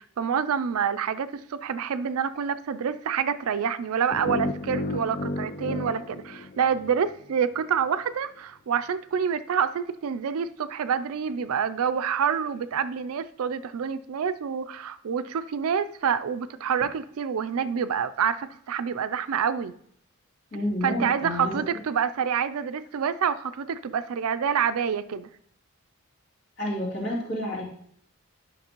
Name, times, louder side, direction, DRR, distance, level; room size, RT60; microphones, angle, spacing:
voice 1, 0.0-19.7 20.8-25.3, right 7 dB, 75° right, 13 dB, 0.4 m, -27 dB
sound 1, 4.1-7.2, left 2 dB, 35° left, 0.4 m, -33 dB
voice 2, 20.5-21.6 26.6-27.6, left 1 dB, 50° left, -5 dB, 2.6 m, -29 dB
11.0 x 5.9 x 3.0 m, 0.67 s
head